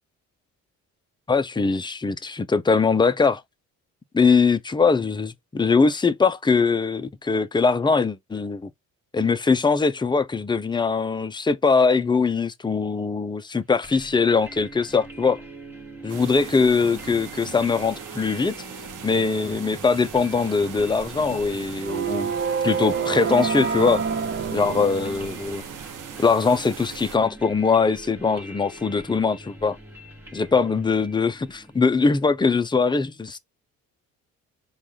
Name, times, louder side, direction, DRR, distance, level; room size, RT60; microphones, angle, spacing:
voice 1, 1.3-3.4 4.1-8.7 9.1-15.4 16.0-18.5 19.0-22.3 22.6-24.0 24.5-25.6 26.2-29.8 30.3-33.4, left 4 dB, 15° left, 0.5 m, -21 dB
sound 1, 13.8-32.5, right 1 dB, 5° right, 1.2 m, -44 dB
sound 2, 16.1-27.2, right 8 dB, 60° right, 0.8 m, -39 dB
sound 3, 20.3-25.9, right 6 dB, 30° right, 0.6 m, -28 dB
4.5 x 2.4 x 3.6 m
supercardioid pair, 65°, 36 cm